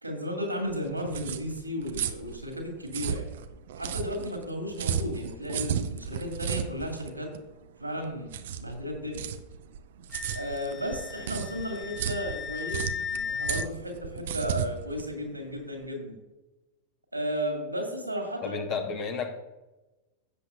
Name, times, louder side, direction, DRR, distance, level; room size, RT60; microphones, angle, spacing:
voice 1, 0.0-3.3 3.8-7.3 7.8-9.2 10.3-16.2 17.1-18.6, equal, 85° right, 2 dB, 2.5 m, -34 dB
sound 1, 0.7-15.9, right 8 dB, 60° right, 0.6 m, -35 dB
Wind instrument woodwind instrument, 10.1-13.7, left 6 dB, 20° left, 0.4 m, -36 dB
voice 2, 18.4-19.4, left 5 dB, 40° left, 5 dB, 1.6 m, -32 dB
16.0 x 7.5 x 2.6 m, 1.0 s
figure-of-eight pair, 90°, 0 cm